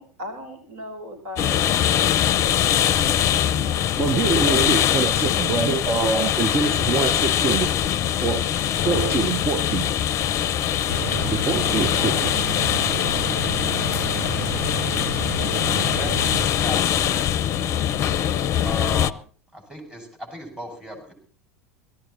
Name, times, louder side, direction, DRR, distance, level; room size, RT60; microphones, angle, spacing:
voice 1, 0.0-2.0 3.4-3.9, left 2 dB, 60° right, 6 dB, 5.2 m, -38 dB
sound 1, 1.4-19.1, left 10 dB, 40° left, 0.7 m, -22 dB
voice 2, 4.0-7.7 8.2-8.5 8.8-9.8 11.2-12.3, right 4 dB, 30° right, 11 dB, 0.9 m, -24 dB
sound 2, 10.9-16.5, right 7 dB, 75° right, 1.4 m, -31 dB
voice 3, 15.8-17.3 18.6-19.2 19.5-21.1, equal, 10° right, 2 dB, 6.8 m, -36 dB
17.5 x 15.0 x 4.3 m, 0.43 s
figure-of-eight pair, 80°, 8 cm